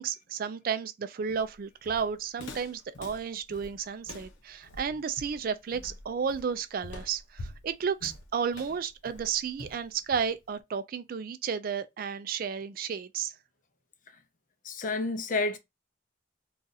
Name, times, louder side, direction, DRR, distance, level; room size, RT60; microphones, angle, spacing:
voice 1, 0.0-13.3, right 6 dB, 50° right, 0.3 m, -32 dB
Walk footsteps, 1.3-10.5, left 2 dB, 90° left, 0.7 m, -46 dB
voice 2, 14.6-15.6, left 3 dB, 45° left, 0.5 m, -29 dB
2.7 x 2.4 x 3.9 m
head